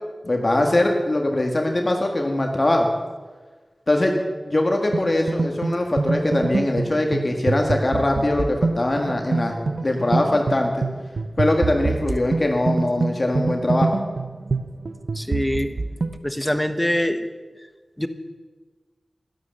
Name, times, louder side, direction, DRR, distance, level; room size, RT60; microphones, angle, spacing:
voice 1, 0.2-2.9 3.9-9.6 9.8-10.8 11.4-13.9, left 1 dB, 45° left, 2 dB, 1.7 m, -22 dB
sound 1, 4.9-16.2, right 3 dB, 80° right, 0.6 m, -26 dB
voice 2, 15.1-15.7 16.2-17.2 18.0-18.1, left 1 dB, 10° left, 9 dB, 1.2 m, -23 dB
12.0 x 11.5 x 6.6 m, 1.3 s
cardioid pair, 45°, 0 cm